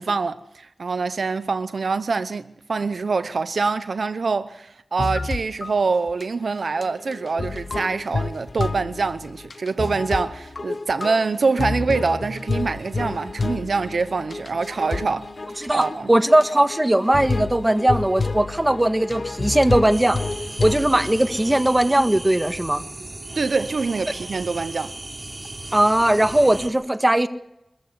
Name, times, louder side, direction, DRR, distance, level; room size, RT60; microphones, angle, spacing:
voice 1, 0.0-15.3 15.7-16.1 23.3-25.0, right 4 dB, 80° right, 0.8 m, -25 dB
sound 1, 5.0-5.7 6.1-6.2 6.6-21.9, left 3 dB, 55° left, 1.1 m, -30 dB
voice 2, 15.6-20.2 20.6-22.8 25.7-27.3, right 1 dB, 20° right, 1.7 m, -19 dB
sound 2, 19.9-26.7, right 2 dB, 35° right, 3.6 m, -36 dB
24.0 x 14.5 x 8.1 m
wide cardioid pair, 75°, 0 cm